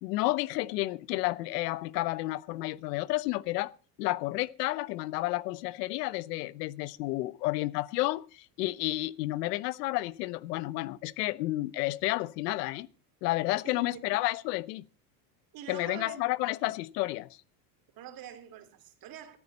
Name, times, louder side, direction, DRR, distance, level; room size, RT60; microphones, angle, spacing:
voice 1, 0.0-3.7 4.0-12.9 13.2-14.8 15.7-17.3, left 19 dB, 75° left, 0.9 m, -31 dB
voice 2, 13.6-14.2 15.5-16.3 17.9-19.4, right 10 dB, 45° right, 2.9 m, -45 dB
16.5 x 13.5 x 4.1 m
supercardioid pair, 115°, 49 cm